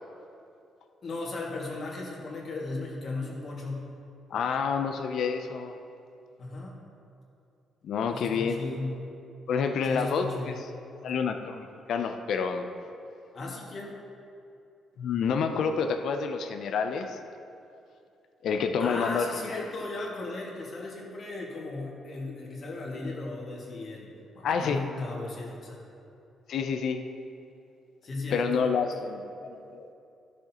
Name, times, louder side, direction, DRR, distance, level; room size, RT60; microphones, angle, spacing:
voice 1, 1.0-3.9 6.4-6.8 8.1-9.0 9.8-10.6 13.3-14.0 18.8-24.1 24.3-25.8 28.0-28.7, left 2 dB, 50° left, -3 dB, 2.0 m, -36 dB
voice 2, 4.3-5.8 7.8-8.6 9.5-10.5 11.0-12.7 15.0-17.2 18.4-19.6 24.4-24.8 26.5-27.0 28.3-29.9, left 6 dB, 70° left, 6 dB, 0.6 m, -28 dB
12.5 x 6.4 x 3.0 m, 2.6 s
cardioid pair, 90°, 0 cm